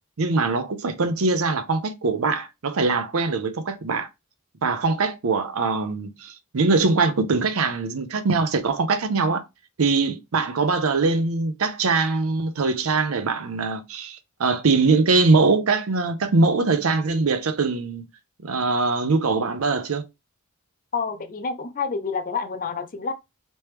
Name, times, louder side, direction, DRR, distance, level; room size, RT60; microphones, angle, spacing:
voice 1, 0.2-4.1 4.6-9.4 9.8-18.0 18.4-20.0, right 3 dB, 70° right, 0.6 m, -22 dB
voice 2, 20.9-23.1, left 5 dB, 40° left, 0.5 m, -28 dB
3.1 x 3.0 x 3.2 m
head